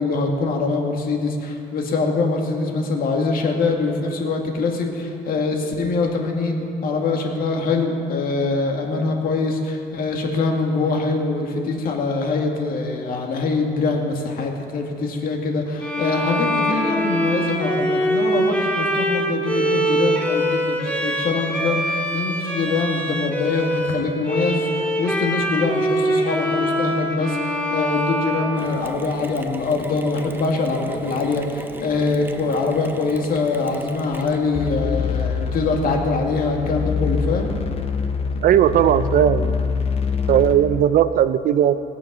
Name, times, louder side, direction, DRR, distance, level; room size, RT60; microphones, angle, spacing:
voice 1, 0.0-37.5, left 3 dB, 60° left, 2 dB, 2.0 m, -23 dB
Bowed string instrument, 15.8-29.3, equal, 5° left, 2.0 m, -23 dB
Mechanisms, 28.6-34.8, right 2 dB, 10° right, 0.8 m, -38 dB
sound 1, 34.5-40.6, left 5 dB, 35° left, 1.1 m, -25 dB
voice 2, 38.4-39.7 40.3-41.8, right 10 dB, 55° right, 13 dB, 0.5 m, -17 dB
20.0 x 7.0 x 6.1 m, 2.6 s
cardioid pair, 110°, 17 cm